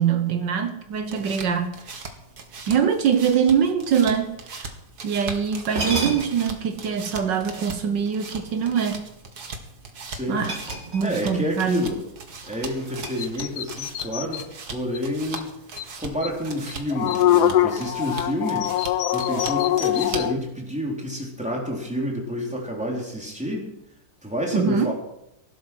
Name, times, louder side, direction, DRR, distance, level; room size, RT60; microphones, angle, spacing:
voice 1, 0.0-1.8 2.7-4.7 5.0-9.1 10.3-10.6 10.9-11.9 24.5-24.9, right 7 dB, 75° right, 1.7 m, -23 dB
sound 1, 0.9-20.4, right 4 dB, 60° right, 2.3 m, -39 dB
sound 2, 5.7-6.6 8.3-9.2 10.4-11.3 11.6-11.8 12.3-13.7, right 2 dB, 35° right, 3.1 m, -33 dB
voice 2, 10.1-10.5 11.0-12.0 12.5-14.4 14.7-15.5 16.0-18.7 19.1-23.7 24.2-24.9, equal, 5° right, 3.9 m, -29 dB
sound 3, 13.2-14.5 15.0-15.1 15.4-15.5 15.8-15.9 16.2-16.3 16.7-20.3, left 12 dB, 70° left, 1.2 m, -23 dB
17.5 x 12.0 x 6.2 m
omnidirectional pair, 2.0 m